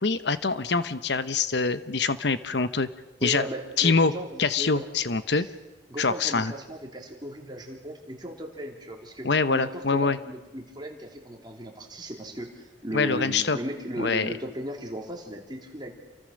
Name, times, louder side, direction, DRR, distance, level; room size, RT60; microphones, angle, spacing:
voice 1, 0.0-2.9 3.2-3.4 3.8-4.1 4.4-5.5 6.0-6.5 9.2-10.2 12.9-13.6 14.0-14.3, left 4 dB, 65° left, 13 dB, 1.0 m, -24 dB
voice 2, 3.2-4.9 5.4-5.5 5.9-15.9, equal, 25° right, 1 dB, 3.2 m, -36 dB
29.0 x 24.0 x 6.5 m, 1.1 s
head